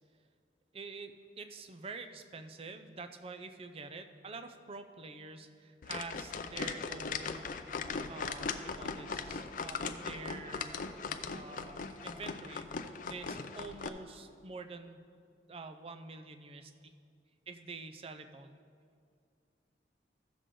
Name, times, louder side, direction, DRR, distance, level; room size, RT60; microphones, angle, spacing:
voice 1, 0.7-7.7 8.1-10.8 11.2-15.0 15.5-16.9 17.5-18.5, right 3 dB, 35° right, 8 dB, 0.5 m, -47 dB
sound 1, 5.8-13.9, left 5 dB, 50° left, 0.4 m, -39 dB
sound 2, 5.9-12.2, left 1 dB, 5° left, 1.1 m, -57 dB
14.5 x 6.7 x 3.8 m, 2.2 s
head